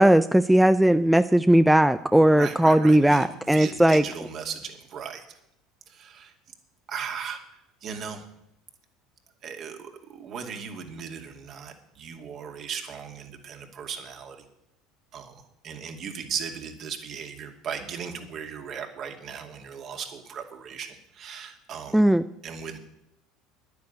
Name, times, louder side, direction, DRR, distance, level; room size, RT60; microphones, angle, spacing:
voice 1, 0.0-4.0 21.9-22.2, right 1 dB, 5° right, 11 dB, 0.5 m, -18 dB
voice 2, 2.3-5.4 5.9-6.3 6.9-7.4 7.8-8.2 9.4-14.4 15.1-15.3 15.6-22.0 22.4-22.8, right 7 dB, 50° right, 4 dB, 2.4 m, -37 dB
10.5 x 9.4 x 8.1 m, 0.84 s
hypercardioid pair, 80°, 0 cm